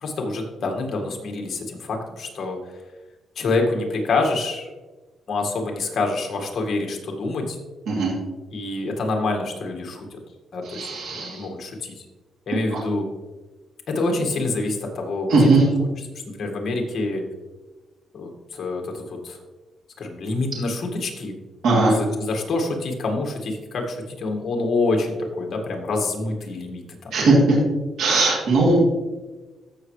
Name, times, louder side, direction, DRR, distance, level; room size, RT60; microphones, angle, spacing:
voice 1, 0.0-2.6 3.4-4.7 5.3-7.6 8.5-10.2 10.5-12.0 12.5-13.1 13.9-15.9 16.3-17.2 18.1-19.4 20.0-21.4 22.0-27.1, left 3 dB, 50° left, 2 dB, 1.9 m, -26 dB
voice 2, 10.7-11.4 15.3-15.6 21.6-21.9 27.1-27.6 28.0-28.7, right 3 dB, 75° right, -4 dB, 2.9 m, -18 dB
14.0 x 6.4 x 3.3 m, 1.2 s
cardioid pair, 125°, 0 cm